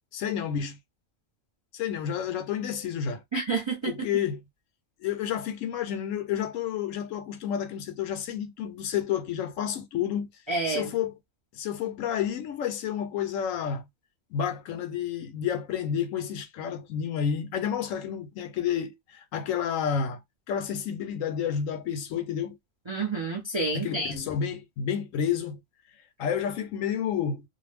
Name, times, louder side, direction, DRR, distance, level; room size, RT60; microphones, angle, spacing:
voice 1, 0.1-0.8 1.7-3.2 3.9-4.4 5.0-10.3 10.7-11.1 11.5-13.8 14.3-20.2 20.5-22.6 23.7-25.6 26.2-27.4, left 8 dB, 75° left, 0.9 m, -30 dB
voice 2, 3.3-4.1 10.5-10.9 22.9-24.3, right 3 dB, 35° right, 0.4 m, -29 dB
2.5 x 2.1 x 3.2 m
omnidirectional pair, 1.4 m